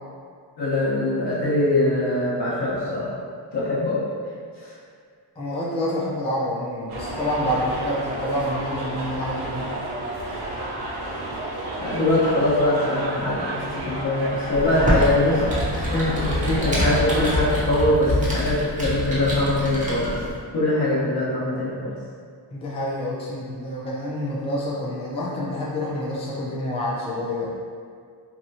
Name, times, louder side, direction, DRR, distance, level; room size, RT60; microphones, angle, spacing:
voice 1, 0.6-3.1 3.5-4.0 4.6-4.7 11.8-20.1 20.5-21.9, left 1 dB, 75° left, -8 dB, 1.0 m, -22 dB
voice 2, 5.4-9.7 22.5-27.5, left 1 dB, 15° left, -5 dB, 0.4 m, -27 dB
sound 1, 6.9-17.6, right 1 dB, 70° right, 0.6 m, -31 dB
Computer keyboard, 14.5-20.3, equal, 20° right, 0.7 m, -26 dB
2.8 x 2.2 x 2.7 m, 2.2 s
cardioid pair, 105°, 42 cm